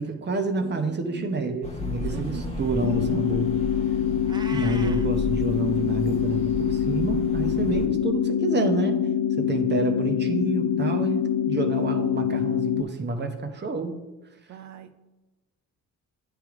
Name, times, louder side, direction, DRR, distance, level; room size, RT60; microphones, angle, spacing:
voice 1, 0.0-3.5 4.5-9.0 9.4-14.0, right 3 dB, 35° right, 5 dB, 0.9 m, -28 dB
voice 2, 0.6-1.5 2.0-2.8 11.5-12.3 14.5-15.0, right 7 dB, 70° right, 9 dB, 0.6 m, -41 dB
sound 1, 1.6-7.9, left 3 dB, 20° left, 1.1 m, -34 dB
sound 2, 2.8-12.8, left 9 dB, 85° left, 0.4 m, -25 dB
Meow, 4.2-5.1, right 3 dB, 15° right, 0.5 m, -40 dB
8.9 x 3.4 x 4.7 m, 1.1 s
cardioid pair, 90°, 30 cm